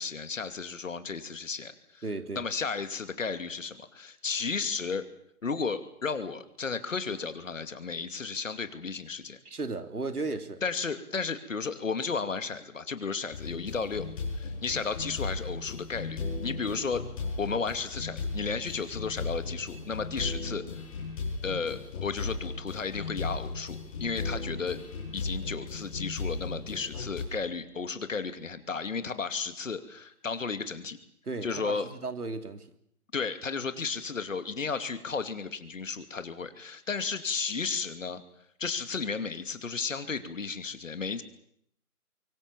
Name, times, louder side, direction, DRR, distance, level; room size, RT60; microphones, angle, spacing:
voice 1, 0.0-2.0 2.3-5.1 5.4-9.4 10.6-14.1 14.4-17.0 17.4-20.6 21.4-24.8 25.1-31.0 31.4-31.9 33.1-38.2 38.6-41.2, left 5 dB, 60° left, 10 dB, 2.7 m, -33 dB
voice 2, 2.0-2.4 9.4-10.6 31.3-32.7, right 3 dB, 85° right, 9 dB, 3.3 m, -35 dB
sound 1, 13.3-27.2, left 4 dB, 25° left, 6.1 m, -36 dB
24.5 x 24.0 x 7.4 m, 0.73 s
figure-of-eight pair, 165°, 44 cm